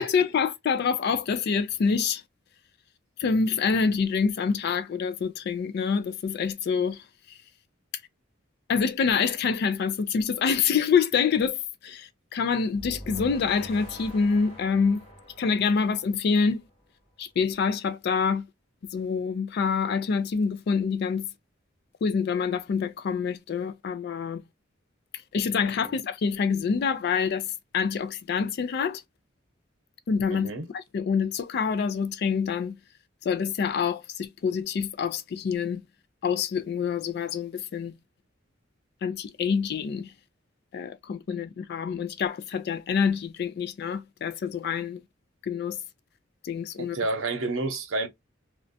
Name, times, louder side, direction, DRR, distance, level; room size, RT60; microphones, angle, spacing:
voice 1, 0.0-2.2 3.2-7.4 8.7-15.0 15.4-16.6 17.2-18.5 18.9-21.3 22.0-24.4 25.3-29.0 30.1-32.8 33.2-35.8 36.2-38.0 39.0-40.1 40.7-45.0 45.4-45.8 46.4-47.0, left 6 dB, 55° left, 0.3 m, -26 dB
sound 1, 12.7-16.8, equal, 30° left, 1.1 m, -44 dB
voice 2, 30.3-30.7 46.8-48.1, right 2 dB, 85° right, 0.8 m, -30 dB
2.5 x 2.1 x 2.5 m
head